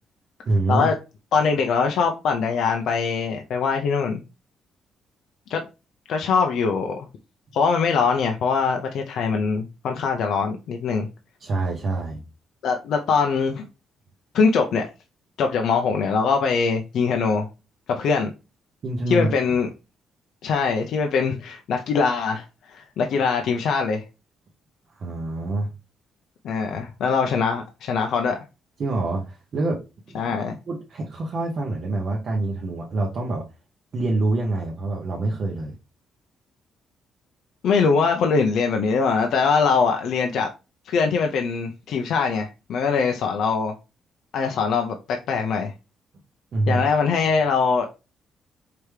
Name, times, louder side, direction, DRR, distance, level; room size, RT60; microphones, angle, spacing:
voice 1, 0.5-0.9 11.4-12.2 18.8-19.3 24.9-25.7 28.8-29.8 30.1-33.5 33.9-35.8 46.5-46.9, right 2 dB, 40° right, 0.7 m, -26 dB
voice 2, 1.3-4.2 5.5-5.6 6.1-7.1 7.5-11.1 12.6-13.7 14.3-14.9 15.4-17.5 17.9-18.3 19.1-19.7 20.4-24.0 26.4-28.4 30.1-30.6 37.6-40.5 40.9-43.7 44.3-45.7 46.7-47.9, left 5 dB, 65° left, 0.5 m, -22 dB
4.7 x 3.4 x 3.2 m
cardioid pair, 175°, 0 cm